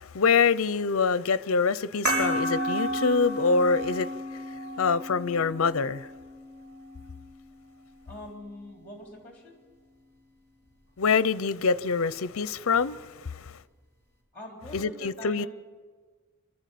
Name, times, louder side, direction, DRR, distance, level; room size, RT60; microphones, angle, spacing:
voice 1, 0.0-4.4 4.8-6.1 11.0-13.6 14.7-15.5, left 5 dB, 70° left, 0.6 m, -25 dB
sound 1, 2.1-7.1, equal, 45° right, 6.4 m, -32 dB
voice 2, 8.1-9.6 14.3-15.5, left 1 dB, 5° left, 3.8 m, -43 dB
29.0 x 13.0 x 8.4 m
head